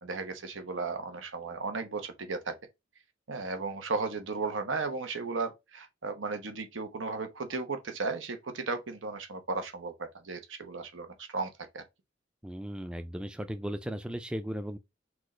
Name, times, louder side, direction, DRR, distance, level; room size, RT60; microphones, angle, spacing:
voice 1, 0.0-2.6 3.3-11.8, right 4 dB, 90° right, 1.0 m, -35 dB
voice 2, 12.4-14.8, equal, 5° right, 0.3 m, -36 dB
6.1 x 2.4 x 3.1 m
head